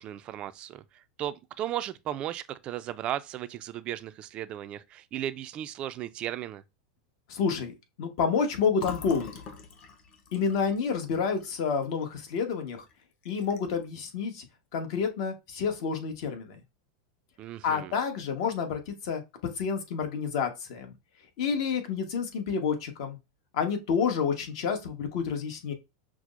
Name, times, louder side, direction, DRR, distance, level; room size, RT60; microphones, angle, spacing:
voice 1, 0.0-6.6 17.4-17.9, right 12 dB, 35° right, 0.3 m, -36 dB
voice 2, 7.3-9.3 10.3-12.8 13.2-14.4 14.7-16.6 17.6-19.2 19.6-20.9 21.4-23.2 23.5-25.7, left 6 dB, 60° left, 1.1 m, -29 dB
Fill (with liquid), 8.8-12.4 12.8-12.9 13.2-13.8, left 5 dB, 35° left, 0.8 m, -43 dB
6.0 x 2.0 x 2.4 m
supercardioid pair, 130°, 3 cm